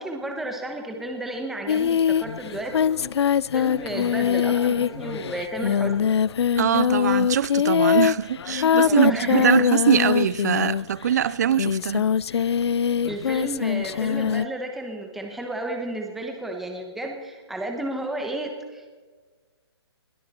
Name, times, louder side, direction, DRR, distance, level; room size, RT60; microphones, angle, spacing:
voice 1, 0.0-2.9 3.5-6.1 8.7-9.5 13.0-18.9, right 1 dB, ahead, 1.0 m, -32 dB
Singing, 1.7-11.0 11.5-14.5, left 8 dB, 75° left, 0.4 m, -23 dB
voice 2, 6.6-12.1, right 9 dB, 40° right, 0.4 m, -22 dB
20.5 x 13.5 x 4.3 m
hypercardioid pair, 160°, 14 cm